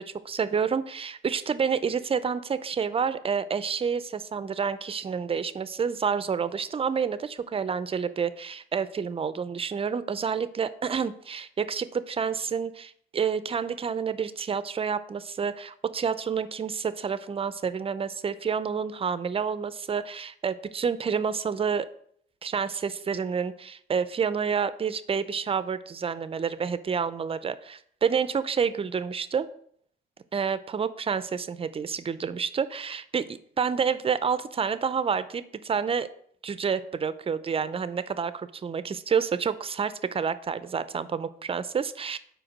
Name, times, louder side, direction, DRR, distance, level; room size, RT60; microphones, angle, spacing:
voice 1, 0.0-21.9 22.4-29.5 30.3-36.1 36.4-42.2, right 6 dB, 30° right, 14 dB, 0.5 m, -29 dB
5.0 x 4.6 x 6.0 m, 0.65 s
cardioid pair, 90°, 20 cm